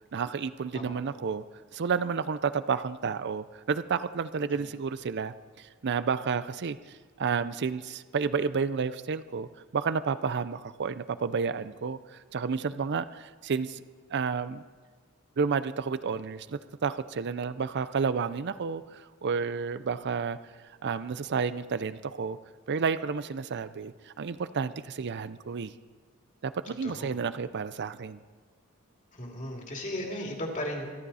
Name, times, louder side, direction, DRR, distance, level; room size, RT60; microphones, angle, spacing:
voice 1, 0.1-1.4 1.7-13.8 14.1-14.6 15.4-20.4 20.8-22.4 22.7-25.7 26.4-28.2, right 5 dB, 55° right, 14 dB, 0.5 m, -31 dB
voice 2, 26.7-27.2 29.1-30.8, left 1 dB, 35° left, 0 dB, 2.7 m, -36 dB
24.5 x 11.5 x 4.2 m, 1.5 s
head